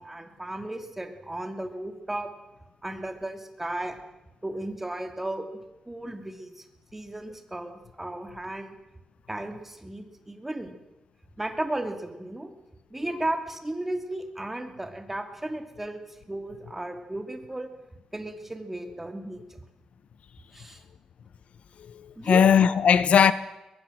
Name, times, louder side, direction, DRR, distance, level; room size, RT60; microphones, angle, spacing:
voice 1, 0.0-2.3 2.8-4.0 4.4-5.5 5.9-6.6 6.9-8.7 9.3-10.8 11.4-12.5 12.9-17.7 18.1-19.6 20.5-20.8 22.2-22.4, right 1 dB, 10° right, 2.8 m, -35 dB
voice 2, 21.8-23.3, left 7 dB, 70° left, 1.0 m, -19 dB
22.0 x 22.0 x 7.8 m
wide cardioid pair, 130°, 2 cm